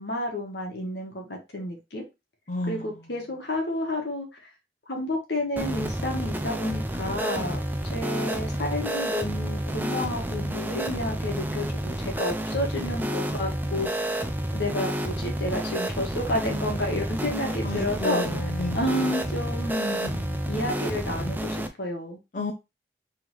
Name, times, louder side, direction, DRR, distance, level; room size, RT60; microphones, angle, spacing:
voice 1, 0.0-2.0 2.7-4.3 4.9-7.6 7.9-13.9 14.5-18.3 18.7-20.1 20.5-22.2, left 1 dB, 75° left, 1.4 m, -30 dB
voice 2, 2.5-3.0 17.6-19.7 19.9-20.5 22.3-22.5, left 2 dB, 45° left, 0.6 m, -33 dB
sound 1, 5.6-21.7, right 1 dB, 10° right, 0.4 m, -30 dB
3.8 x 3.4 x 3.1 m
head